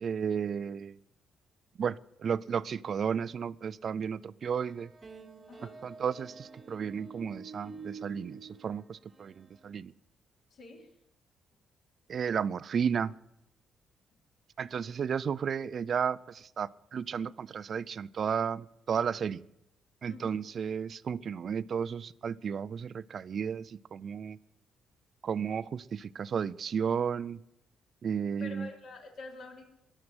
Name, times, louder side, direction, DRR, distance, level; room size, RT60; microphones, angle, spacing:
voice 1, 0.0-1.0 1.8-4.9 5.8-9.9 12.1-13.1 14.6-19.4 20.0-24.4 25.2-27.4 28.0-28.7, right 7 dB, 45° right, 18 dB, 0.4 m, -33 dB
sound 1, 4.5-9.7, right 4 dB, 20° right, 1.2 m, -48 dB
voice 2, 10.5-10.9 20.1-20.4 28.4-29.6, left 3 dB, 55° left, 2 dB, 3.4 m, -46 dB
21.5 x 7.5 x 7.8 m, 0.82 s
cardioid pair, 150°, 0 cm